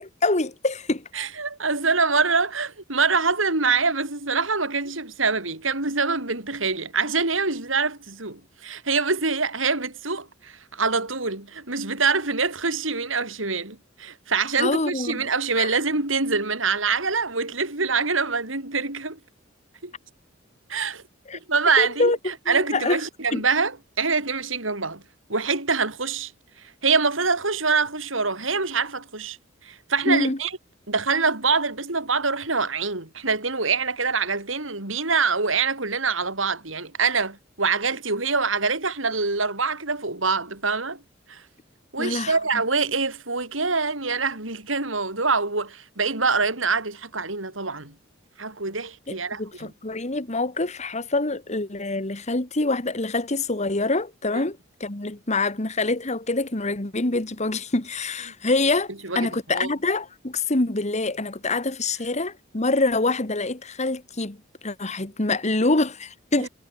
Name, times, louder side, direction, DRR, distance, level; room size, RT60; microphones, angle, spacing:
voice 1, 0.2-1.1 14.6-15.3 15.6-15.7 21.3-21.4 21.8-22.2 22.5-23.0 23.3-23.4 30.1-30.4 42.0-42.4 49.1-64.4 64.6-66.5, left 2 dB, 35° left, 1.9 m, -25 dB
voice 2, 1.1-19.2 19.8-19.9 20.7-21.0 21.5-25.0 25.3-26.3 26.8-29.4 29.6-30.5 30.9-41.0 41.3-41.4 41.9-47.9 48.4-49.7 54.3-54.4 59.0-59.7 66.4-66.5, right 4 dB, 85° right, 5.7 m, -25 dB
head